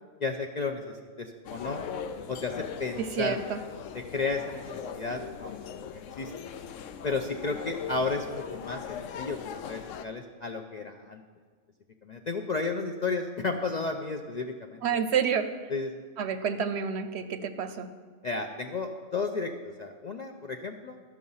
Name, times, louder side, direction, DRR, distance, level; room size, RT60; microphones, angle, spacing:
voice 1, 0.2-1.8 2.3-3.4 3.9-6.3 7.0-11.2 12.0-15.0 15.7-16.0 18.2-21.0, left 3 dB, 50° left, 3 dB, 0.5 m, -33 dB
sound 1, 1.5-10.1, left 8 dB, 80° left, 0.9 m, -40 dB
voice 2, 3.2-3.6 14.8-15.5 16.2-17.9, right 7 dB, 65° right, 10 dB, 0.8 m, -29 dB
13.0 x 6.4 x 5.5 m, 1.5 s
omnidirectional pair, 1.3 m